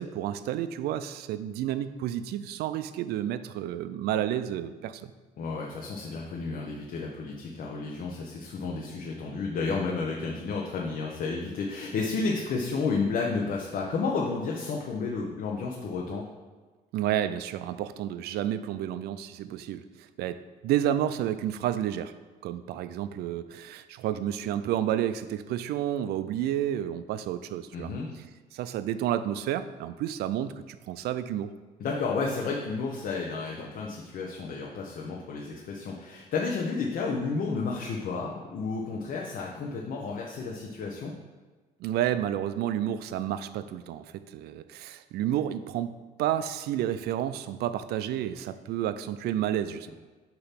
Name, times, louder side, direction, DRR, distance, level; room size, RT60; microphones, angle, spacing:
voice 1, 0.0-5.1 16.9-22.1 22.4-27.9 28.5-31.5 41.8-45.9 46.2-49.9, right 11 dB, 70° right, 12 dB, 0.4 m, -30 dB
voice 2, 5.4-16.2 27.7-28.1 31.8-41.1, left 4 dB, 55° left, -2 dB, 0.8 m, -31 dB
6.6 x 3.0 x 5.8 m, 1.3 s
cardioid pair, 110°, 17 cm